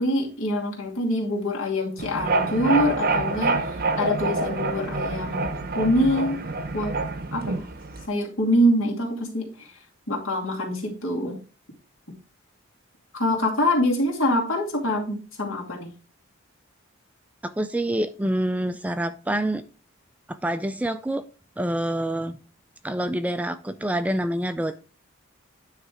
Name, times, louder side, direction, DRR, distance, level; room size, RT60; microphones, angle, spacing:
voice 1, 0.0-5.5 5.7-6.4 6.7-7.0 7.3-7.6 8.1-9.7 10.1-11.4 13.1-15.9, equal, 80° left, -2 dB, 2.5 m, -25 dB
sound 1, 2.0-8.1, right 3 dB, 45° right, 0.7 m, -27 dB
voice 2, 17.4-19.6 20.3-21.2 21.6-22.4 22.8-24.8, right 1 dB, 5° right, 11 dB, 0.3 m, -26 dB
9.7 x 3.3 x 4.8 m, 0.34 s
head